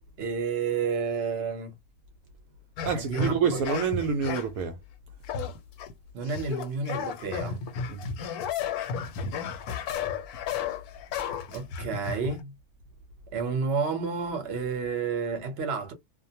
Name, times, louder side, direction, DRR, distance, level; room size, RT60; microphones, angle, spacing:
voice 1, 0.2-1.7 2.9-3.6 6.1-7.6 11.5-12.5 13.3-15.9, right 5 dB, 50° right, 0.9 m, -30 dB
sound 1, 2.8-4.6 5.2-5.9 6.3-12.4, left 7 dB, 75° left, 1.1 m, -33 dB
voice 2, 2.9-4.8 7.9-8.0, right 6 dB, 75° right, 1.0 m, -27 dB
2.5 x 2.1 x 2.8 m
omnidirectional pair, 1.6 m